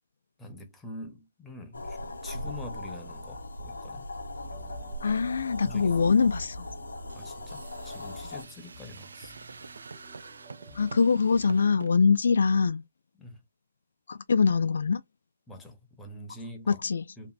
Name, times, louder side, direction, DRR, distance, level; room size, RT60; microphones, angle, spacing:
voice 1, 0.4-4.0 5.6-6.1 7.1-9.3 13.2-13.4 15.5-16.8 17.2-17.3, left 1 dB, 10° left, 0.7 m, -45 dB
sound 1, 1.7-8.4, left 1 dB, 85° left, 0.7 m, -39 dB
sound 2, 4.4-12.0, right 1 dB, 35° right, 0.8 m, -53 dB
voice 2, 5.0-6.6 10.8-12.8 14.1-15.0 16.7-17.0, left 5 dB, 70° left, 0.3 m, -23 dB
sound 3, 7.1-11.9, right 4 dB, 75° right, 0.3 m, -46 dB
2.9 x 2.5 x 2.5 m
figure-of-eight pair, 140°, 0 cm